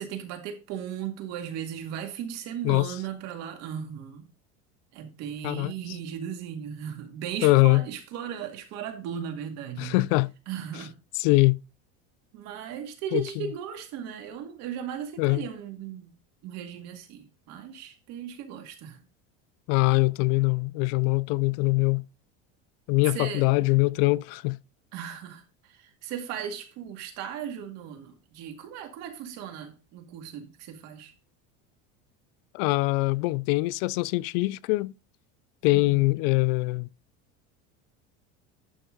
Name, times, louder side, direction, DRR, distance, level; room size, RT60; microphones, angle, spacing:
voice 1, 0.0-4.3 4.9-10.0 10.5-10.9 12.3-16.1 16.4-19.0 23.1-23.5 24.9-31.1 35.7-36.0, right 9 dB, 55° right, 2.2 m, -37 dB
voice 2, 7.4-7.8 9.8-10.3 11.2-11.6 13.1-13.2 15.2-15.4 19.7-22.0 22.9-24.6 32.5-34.9 35.6-36.9, left 23 dB, 70° left, 0.4 m, -23 dB
11.5 x 5.5 x 3.9 m
cardioid pair, 155°, 31 cm